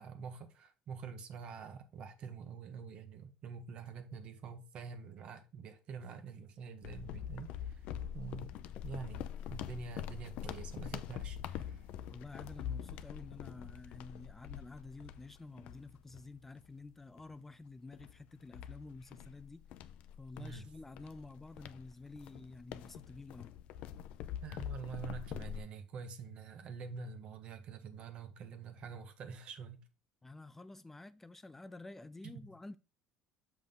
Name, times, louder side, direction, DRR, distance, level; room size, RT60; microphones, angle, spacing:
voice 1, 0.0-7.8 8.1-11.9 20.4-20.7 24.4-29.8 32.2-32.5, right 5 dB, 55° right, 1.2 m, -46 dB
sound 1, 6.8-16.7 17.2-17.3 17.9-25.6, left 10 dB, 70° left, 0.5 m, -45 dB
voice 2, 12.1-19.6 20.2-23.5 30.2-32.8, left 3 dB, 15° left, 0.4 m, -50 dB
7.0 x 5.2 x 3.9 m
supercardioid pair, 95°, 2 cm